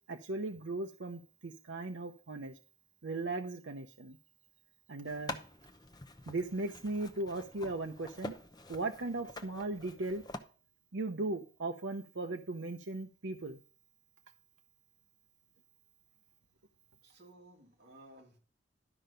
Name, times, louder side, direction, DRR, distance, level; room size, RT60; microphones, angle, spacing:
voice 1, 0.1-2.5 3.0-4.2 4.9-5.4 6.3-8.3 8.7-10.2 10.9-13.6, right 2 dB, 80° right, 4 dB, 0.8 m, -37 dB
sound 1, 5.0-10.4, left 2 dB, 20° left, 0.7 m, -47 dB
voice 2, 17.0-18.4, right 1 dB, 55° right, -1 dB, 3.0 m, -57 dB
12.0 x 5.6 x 5.2 m, 0.39 s
head